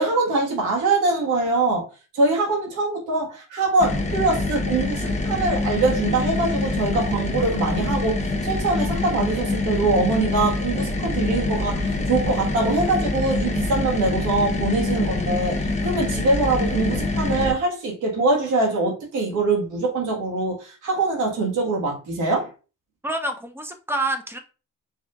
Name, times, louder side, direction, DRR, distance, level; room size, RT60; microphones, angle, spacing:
voice 1, 0.0-1.9 2.1-22.5, right 3 dB, 90° right, 1.7 m, -23 dB
sound 1, 3.8-17.5, left 2 dB, 25° left, 0.9 m, -25 dB
voice 2, 23.0-24.4, right 2 dB, 10° right, 0.8 m, -27 dB
5.0 x 3.5 x 2.4 m
cardioid pair, 90°, 30 cm